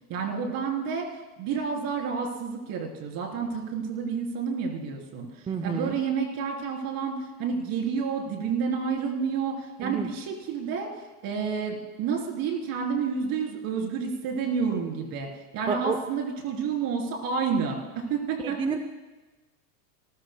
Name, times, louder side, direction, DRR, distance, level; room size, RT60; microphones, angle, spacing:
voice 1, 0.1-15.3 15.5-18.6, right 6 dB, 45° right, 0 dB, 3.8 m, -30 dB
voice 2, 5.5-5.9 9.8-10.1 15.7-16.0 18.4-18.8, right 5 dB, 10° right, 6 dB, 0.5 m, -29 dB
29.5 x 13.5 x 2.2 m, 1.1 s
hypercardioid pair, 110°, 46 cm